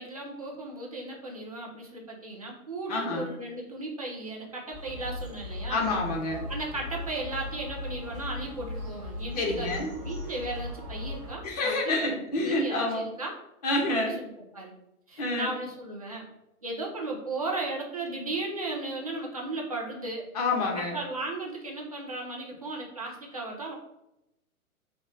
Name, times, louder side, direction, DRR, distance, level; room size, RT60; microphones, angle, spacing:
voice 1, 0.0-5.8 6.5-12.0 12.3-13.3 14.0-14.3 14.5-14.7 15.1-16.3 16.6-20.2 20.7-23.7, right 2 dB, 30° right, -2 dB, 0.3 m, -36 dB
voice 2, 2.9-3.3 5.7-6.5 9.3-9.9 11.4-13.1 13.6-14.2 15.2-15.5 20.3-21.0, left 2 dB, 30° left, 0 dB, 0.6 m, -28 dB
sound 1, 4.7-11.3, left 1 dB, ahead, 0.9 m, -38 dB
3.1 x 2.1 x 3.9 m, 0.87 s
figure-of-eight pair, 115°, 44 cm